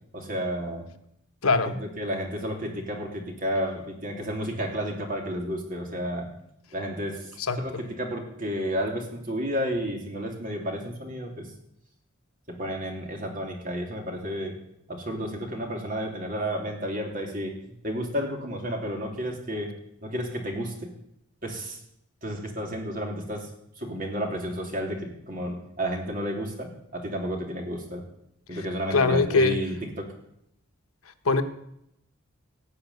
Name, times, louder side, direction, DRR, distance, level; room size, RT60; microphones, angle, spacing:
voice 1, 0.1-0.9 1.7-6.3 6.7-7.3 7.6-11.5 12.5-14.6 14.9-19.7 20.0-20.9 21.4-21.8 22.2-23.5 23.8-28.1 28.5-30.1, equal, 40° right, 1 dB, 2.9 m, -31 dB
voice 2, 1.4-1.8 7.4-7.8 28.5-28.6 28.9-29.6 31.2-31.4, left 4 dB, 85° left, 9 dB, 1.1 m, -22 dB
17.0 x 5.7 x 9.5 m, 0.77 s
head